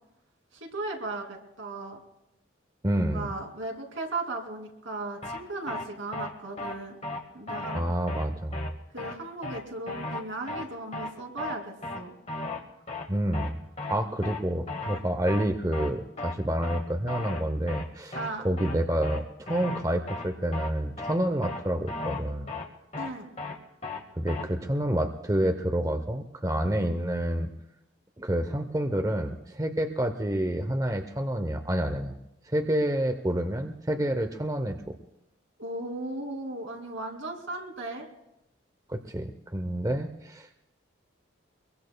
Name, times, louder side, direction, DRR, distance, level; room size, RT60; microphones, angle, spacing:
voice 1, 0.6-2.0 2.9-7.0 7.3-7.8 8.9-12.1 18.1-18.4 23.0-23.3 35.6-38.1, right 2 dB, 85° right, 1 dB, 2.6 m, -36 dB
voice 2, 2.8-3.3 7.7-8.6 13.1-13.6 13.9-18.2 18.4-22.5 24.2-27.5 28.2-32.1 32.5-35.0 38.9-40.5, right 1 dB, 20° right, 6 dB, 0.7 m, -28 dB
sound 1, 5.2-5.4 5.7-5.8 6.1-6.3 6.6-6.7 7.0-7.2 7.5-7.8 8.1-8.2 8.5-8.7 9.0-9.1 9.4-9.6 9.9-10.2 10.5-10.6 10.9-11.1 11.4-11.6 11.8-12.0 12.3-12.6 12.9-13.1 13.3-13.5 13.8-14.0 14.2-14.4 14.7-15.0 15.3-15.5 15.7-15.9 16.2-16.3 16.6-16.8 17.1-17.4 17.7-17.8 18.1-18.3 18.6-18.7 19.0-19.2 19.5-19.8 20.1-20.3 20.5-20.7 21.0-21.1 21.4-21.6 21.9-22.2 22.5-22.6 22.9-23.1 23.4-23.6 23.8-24.0 24.3-24.4, left 2 dB, 35° left, 1.5 m, -35 dB
24.5 x 22.5 x 2.3 m, 0.87 s
head